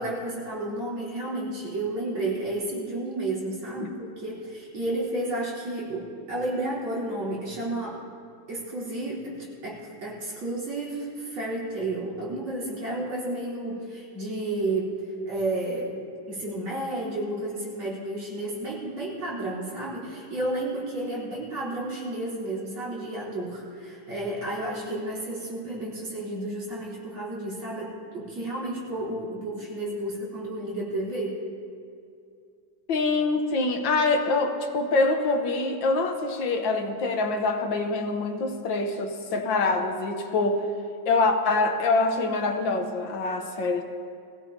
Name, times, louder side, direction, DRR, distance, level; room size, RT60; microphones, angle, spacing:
voice 1, 0.0-8.0 8.5-15.0 15.3-16.0 16.3-31.4, right 1 dB, 90° right, -7 dB, 4.7 m, -32 dB
voice 2, 32.9-40.7 41.1-43.8, left 3 dB, 75° left, 4 dB, 1.8 m, -25 dB
21.5 x 16.0 x 2.8 m, 2.5 s
omnidirectional pair, 2.2 m